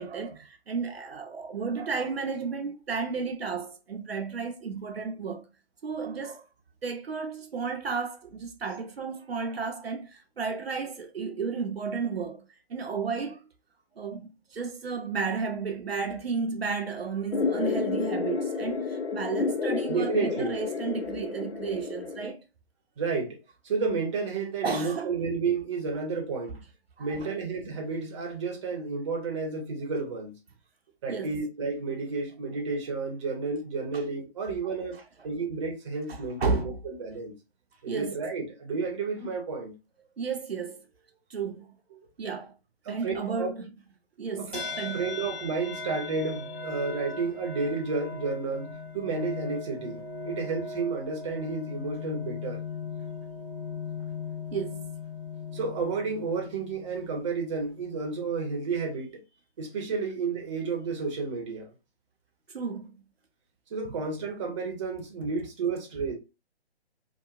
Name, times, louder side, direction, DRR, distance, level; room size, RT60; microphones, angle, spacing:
voice 1, 0.0-5.5 5.8-6.4 6.8-13.4 14.0-22.4 24.6-25.2 27.0-27.3 31.1-31.4 33.9-34.0 36.1-36.7 37.9-38.2 40.2-40.9 41.3-41.7 42.2-42.5 42.9-43.7 44.2-45.2 54.5-54.9 62.5-63.0, right 5 dB, 65° right, 0.6 m, -33 dB
sound 1, 17.3-22.3, left 4 dB, 85° left, 0.5 m, -30 dB
voice 2, 19.9-20.5 23.0-23.4 23.6-26.6 27.0-30.3 31.0-35.0 35.2-37.3 37.8-39.7 41.9-42.0 42.9-43.5 44.5-44.6 44.9-52.6 55.5-59.2 59.6-61.7 63.7-66.1, right 4 dB, 30° right, 0.7 m, -31 dB
sound 2, 44.5-58.0, left 4 dB, 10° left, 0.5 m, -38 dB
2.8 x 2.2 x 2.4 m
figure-of-eight pair, 140°, 33 cm